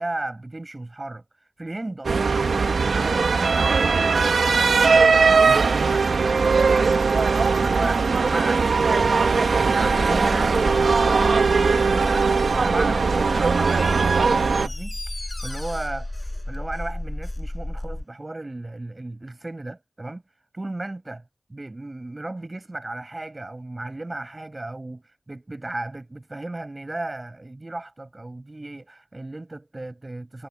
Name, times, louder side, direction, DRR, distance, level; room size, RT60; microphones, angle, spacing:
voice 1, 0.0-9.1 9.5-20.2 20.5-21.2 21.5-30.5, right 2 dB, 35° right, 7.9 m, -35 dB
sound 1, 2.0-14.7, right 4 dB, 90° right, 1.5 m, -19 dB
sound 2, 9.8-18.0, left 1 dB, 20° left, 7.0 m, -32 dB
Door, 12.9-17.5 17.8-17.9, left 2 dB, 40° left, 6.9 m, -42 dB
cardioid pair, 50°, 0 cm